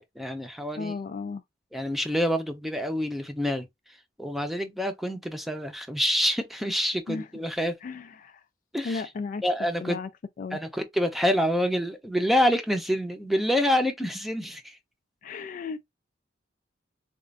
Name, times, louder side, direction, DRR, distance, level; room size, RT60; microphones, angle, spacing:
voice 1, 0.0-0.9 1.7-3.7 4.2-7.8 8.7-9.0 9.4-10.0 10.5-14.8, equal, ahead, 0.6 m, -27 dB
voice 2, 0.8-1.4 7.1-7.3 7.8-8.4 8.8-9.4 9.8-10.1 10.4-10.6 15.2-15.8, left 4 dB, 45° left, 0.3 m, -34 dB
4.2 x 2.4 x 2.4 m
head